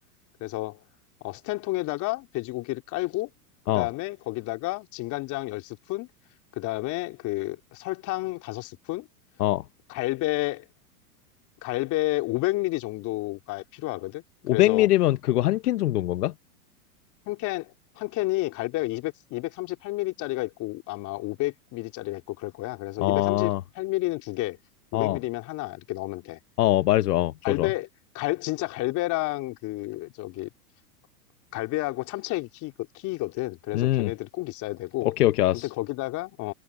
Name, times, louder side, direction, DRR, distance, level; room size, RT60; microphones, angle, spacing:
voice 1, 0.4-0.8 1.2-3.3 3.7-6.1 6.5-9.1 9.9-10.7 11.6-14.2 14.5-14.9 17.3-24.6 24.9-26.4 27.4-27.9 28.1-30.5 31.5-35.1 35.5-36.5, left 19 dB, 40° left, 3.5 m, -30 dB
voice 2, 14.4-16.3 23.0-23.6 24.9-25.2 26.6-27.7 33.7-34.1 35.0-35.7, left 15 dB, 80° left, 1.1 m, -22 dB
hypercardioid pair, 130°, 46 cm